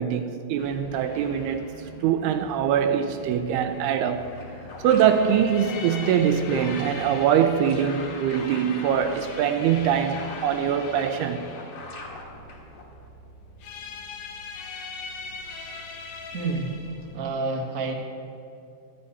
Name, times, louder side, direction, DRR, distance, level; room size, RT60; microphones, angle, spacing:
voice 1, 0.0-1.7 2.0-4.3 4.8-11.6, right 8 dB, 80° right, 2.4 m, -23 dB
sound 1, 0.6-17.2, left 4 dB, 80° left, 3.4 m, -41 dB
sound 2, 3.8-13.1, left 2 dB, 45° left, 2.6 m, -43 dB
voice 2, 16.3-16.8 17.1-17.9, right 3 dB, 65° right, 0.7 m, -28 dB
17.5 x 13.0 x 4.2 m
omnidirectional pair, 4.9 m